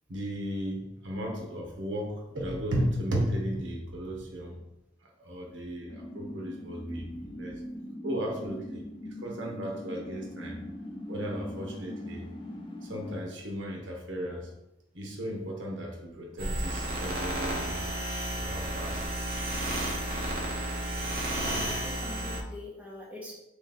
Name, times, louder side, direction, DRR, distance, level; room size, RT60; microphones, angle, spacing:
voice 1, 0.1-4.6 5.0-7.6 8.0-10.6 11.1-12.3 12.8-14.5 14.9-17.9 18.3-19.0, equal, 80° right, 0 dB, 0.9 m, -35 dB
sound 1, 5.9-13.2, left 1 dB, 25° left, 0.5 m, -41 dB
sound 2, 16.4-22.4, right 1 dB, 50° right, 0.8 m, -32 dB
voice 2, 21.5-23.3, left 1 dB, 10° right, -4 dB, 0.8 m, -43 dB
3.4 x 3.1 x 3.9 m, 0.92 s
head